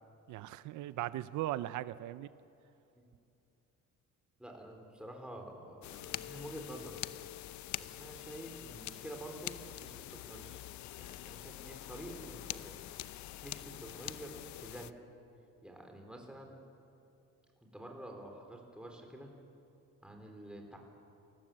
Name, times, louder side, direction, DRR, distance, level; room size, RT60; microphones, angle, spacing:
voice 1, 0.3-2.3, right 14 dB, 80° right, 14 dB, 0.7 m, -38 dB
voice 2, 4.4-7.0 7.8-10.6 11.0-12.8 13.4-15.0 15.6-16.5 17.6-19.3 20.0-20.8, right 1 dB, 5° right, 2 dB, 3.7 m, -48 dB
sound 1, 5.8-14.9, left 14 dB, 75° left, 0.7 m, -45 dB
27.5 x 19.5 x 7.6 m, 2.8 s
cardioid pair, 155°, 29 cm